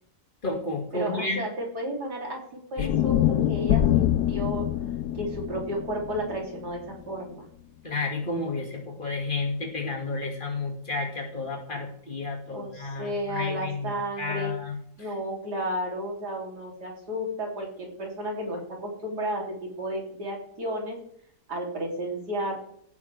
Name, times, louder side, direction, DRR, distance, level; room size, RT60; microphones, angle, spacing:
voice 1, 0.4-1.4 2.8-2.9 7.8-15.1, left 3 dB, 30° left, 1 dB, 2.3 m, -31 dB
voice 2, 0.9-4.7 5.1-7.5 12.5-14.5 15.0-21.0 21.5-22.6, equal, 90° right, -1 dB, 3.8 m, -33 dB
sound 1, 2.8-7.0, left 12 dB, 90° left, 1.2 m, -25 dB
16.0 x 8.5 x 3.4 m, 0.68 s
omnidirectional pair, 1.7 m